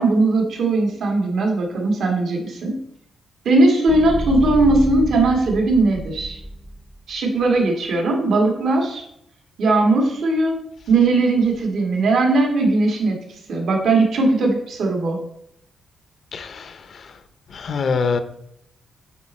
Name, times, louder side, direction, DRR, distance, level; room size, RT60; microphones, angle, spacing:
voice 1, 0.0-2.8 3.5-6.4 7.1-9.0 9.6-10.6 10.9-13.2 13.5-15.2, right 2 dB, 70° right, 1 dB, 1.8 m, -18 dB
sound 1, 3.9-7.0, right 1 dB, 5° right, 0.7 m, -29 dB
voice 2, 16.3-17.0 17.5-18.2, left 5 dB, 50° left, 10 dB, 0.6 m, -24 dB
8.6 x 4.3 x 4.3 m, 0.75 s
cardioid pair, 125°, 0 cm